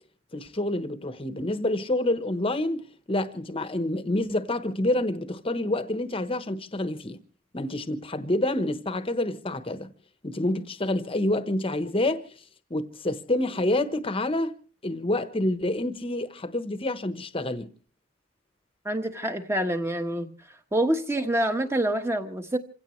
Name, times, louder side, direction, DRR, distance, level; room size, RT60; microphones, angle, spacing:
voice 1, 0.3-7.2 7.5-9.9 10.2-12.2 12.7-14.5 14.8-17.7, left 1 dB, 25° left, 1.1 m, -28 dB
voice 2, 18.8-20.3 20.7-22.6, right 1 dB, 15° right, 1.3 m, -26 dB
27.5 x 16.5 x 3.2 m
head